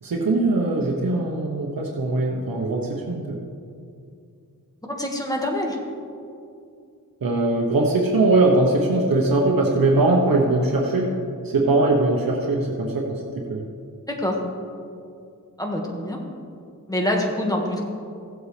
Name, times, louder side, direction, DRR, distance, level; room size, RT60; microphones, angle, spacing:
voice 1, 0.0-3.4 7.2-11.1 11.5-13.6, right 2 dB, 85° right, -1 dB, 1.1 m, -21 dB
voice 2, 4.9-5.8 11.6-11.7 14.1-14.4 15.6-16.2 16.9-17.9, left 1 dB, 10° left, 0 dB, 1.7 m, -25 dB
16.0 x 7.9 x 3.4 m, 2.4 s
wide cardioid pair, 75°, 34 cm